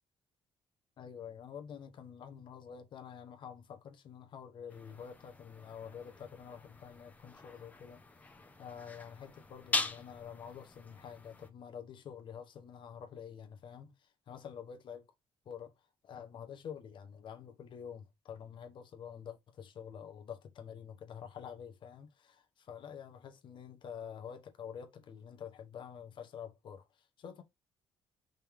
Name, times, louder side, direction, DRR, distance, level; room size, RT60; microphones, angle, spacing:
voice 1, 1.0-8.0 8.6-15.1 15.4-15.7 16.0-27.4, left 8 dB, 55° left, 1.2 m, -48 dB
sound 1, 4.7-11.5, left 3 dB, 15° left, 1.0 m, -42 dB
5.5 x 3.7 x 4.6 m
cardioid pair, 135°, 10 cm